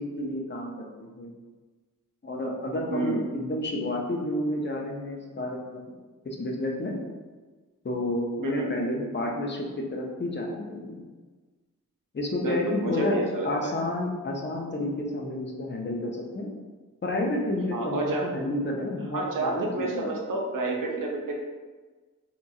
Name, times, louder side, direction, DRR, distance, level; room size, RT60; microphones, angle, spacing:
voice 1, 0.0-1.3 2.2-5.8 6.2-6.9 7.8-11.0 12.1-13.2 13.4-16.5 17.0-20.1, left 1 dB, 35° left, -1 dB, 0.5 m, -30 dB
voice 2, 2.9-3.3 8.4-8.7 12.4-13.7 17.7-18.2 19.1-21.4, right 2 dB, 90° right, -1 dB, 0.6 m, -29 dB
2.9 x 2.3 x 2.6 m, 1.3 s
wide cardioid pair, 100°, 31 cm